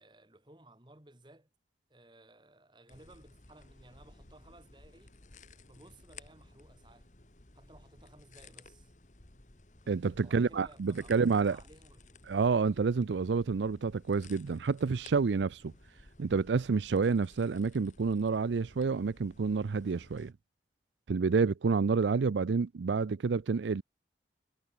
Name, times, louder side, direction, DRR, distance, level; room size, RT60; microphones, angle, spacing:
voice 1, 0.0-1.5 1.9-5.2 5.7-7.1 7.5-8.9 10.2-12.2, right 1 dB, 25° right, 2.1 m, -58 dB
sound 1, 2.9-20.3, left 3 dB, 45° left, 1.7 m, -57 dB
voice 2, 9.9-11.6 12.3-15.7 16.2-20.3 21.1-23.8, right 4 dB, 85° right, 0.5 m, -29 dB
head